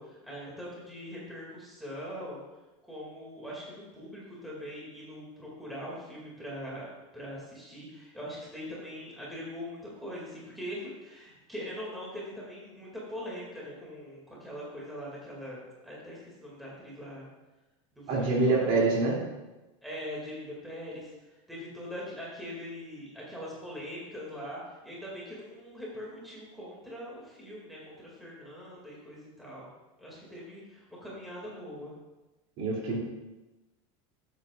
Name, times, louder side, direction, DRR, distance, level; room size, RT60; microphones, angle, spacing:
voice 1, 0.0-2.4 2.8-17.3 17.9-18.8 19.8-21.1 21.5-29.7 30.0-31.9, equal, ahead, -6 dB, 2.3 m, -42 dB
voice 2, 18.1-19.2 32.6-33.0, right 3 dB, 50° right, -3 dB, 2.8 m, -25 dB
13.5 x 8.1 x 2.4 m, 1.1 s
supercardioid pair, 165°, 16 cm